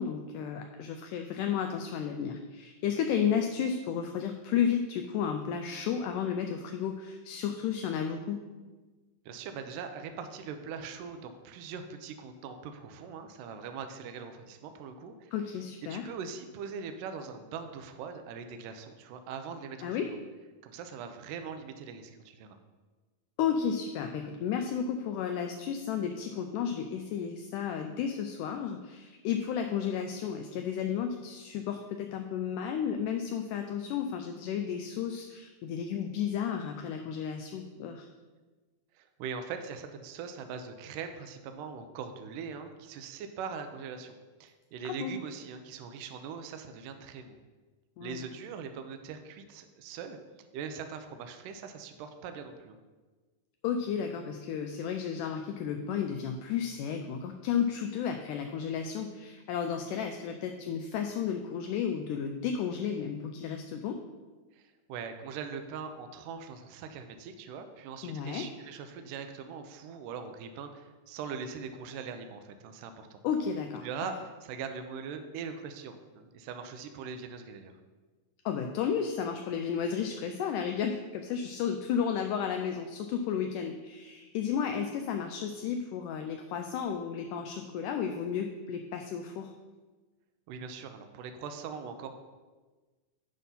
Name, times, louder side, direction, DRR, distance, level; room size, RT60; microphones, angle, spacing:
voice 1, 0.0-8.5 15.3-16.1 19.8-20.1 23.4-38.1 44.8-45.1 48.0-48.2 53.6-64.0 68.0-68.5 73.2-74.1 78.5-89.5, left 7 dB, 80° left, 5 dB, 1.9 m, -33 dB
voice 2, 9.3-15.3 15.9-20.2 20.6-22.6 38.9-44.1 44.4-47.4 48.0-50.2 50.5-52.8 64.5-73.2 73.8-74.2 74.4-77.7 90.5-92.1, right 6 dB, 80° right, 7 dB, 2.2 m, -41 dB
10.5 x 3.7 x 5.6 m, 1.3 s
omnidirectional pair, 4.0 m